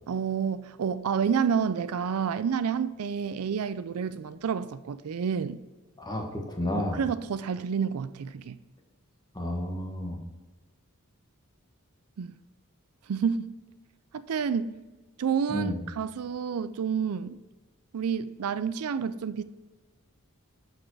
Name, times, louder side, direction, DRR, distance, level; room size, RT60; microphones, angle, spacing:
voice 1, 0.1-5.6 6.8-8.6 12.2-12.3 13.1-13.5 14.1-14.8 15.2-17.4 17.9-19.4, right 7 dB, 70° right, 0.4 m, -29 dB
voice 2, 6.0-7.0 9.3-10.2 15.5-15.8, left 1 dB, 20° left, 1.4 m, -31 dB
6.8 x 6.3 x 4.7 m
head